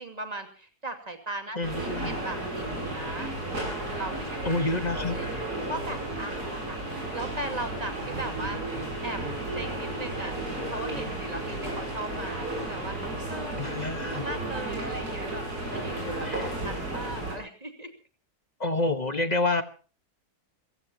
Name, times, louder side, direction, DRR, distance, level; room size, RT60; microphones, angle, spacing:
voice 1, 0.0-4.4 5.0-5.4 5.7-8.6 9.0-9.2 9.5-13.7 14.1-17.9, right 2 dB, 25° right, 5 dB, 2.5 m, -38 dB
voice 2, 1.6-2.2 4.4-5.2 13.6-14.2 16.3-16.5 18.6-19.6, left 2 dB, 30° left, 9 dB, 1.3 m, -28 dB
sound 1, 1.6-17.4, right 1 dB, 80° right, 8.7 m, -33 dB
28.0 x 16.0 x 2.9 m, 0.37 s
omnidirectional pair, 1.6 m